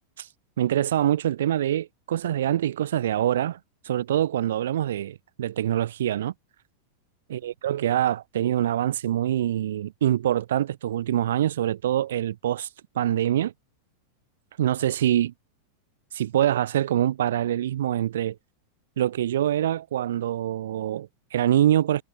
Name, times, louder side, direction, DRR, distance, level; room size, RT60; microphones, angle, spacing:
voice 1, 0.6-3.6 3.8-6.3 7.3-12.7 12.9-13.5 14.6-15.3 16.1-18.4 19.0-22.0, right 11 dB, 60° right, 1.2 m, -25 dB
figure-of-eight pair, 90°, 0 cm